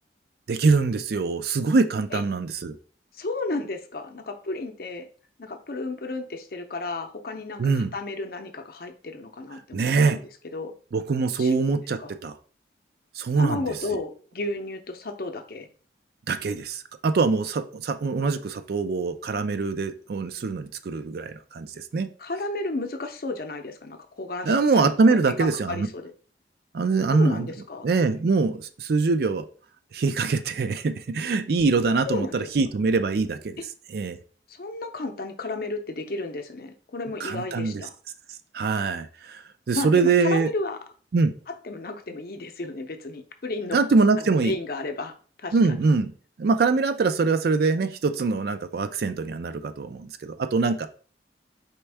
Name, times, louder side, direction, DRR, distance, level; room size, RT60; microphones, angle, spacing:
voice 1, 0.5-2.8 7.6-7.9 9.7-10.2 10.9-12.3 13.2-13.6 13.9-14.0 16.3-22.1 24.4-25.9 26.7-27.5 27.8-29.5 29.9-33.6 33.9-34.2 37.2-37.8 38.5-39.4 39.7-40.5 41.1-41.3 43.7-44.6 45.5-46.1 46.4-50.9, right 4 dB, 55° right, 11 dB, 0.4 m, -23 dB
voice 2, 3.1-5.1 5.4-10.7 11.4-11.6 12.0-12.1 13.4-15.7 22.2-26.1 27.1-27.9 32.0-32.5 34.5-37.9 39.7-40.8 41.5-43.8 44.2-45.1 45.4-45.8, left 2 dB, 55° left, 7 dB, 0.6 m, -33 dB
4.4 x 3.5 x 3.3 m, 0.41 s
head